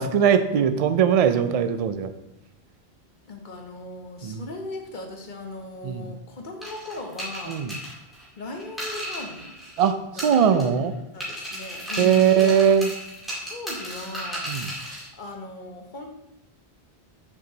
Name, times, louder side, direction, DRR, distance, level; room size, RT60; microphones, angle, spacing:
voice 1, 0.0-2.1 4.2-4.4 5.8-6.1 7.5-7.8 9.8-10.9 12.0-12.9 14.5-14.7, right 8 dB, 55° right, 10 dB, 0.4 m, -20 dB
voice 2, 3.3-7.6 8.4-9.5 10.0-10.2 11.1-13.0 13.4-16.1, left 2 dB, 50° left, 3 dB, 1.1 m, -38 dB
sound 1, 6.6-9.9 10.2-10.9 11.2-15.1, equal, ahead, 2.2 m, -35 dB
6.2 x 4.5 x 3.9 m, 0.87 s
omnidirectional pair, 1.1 m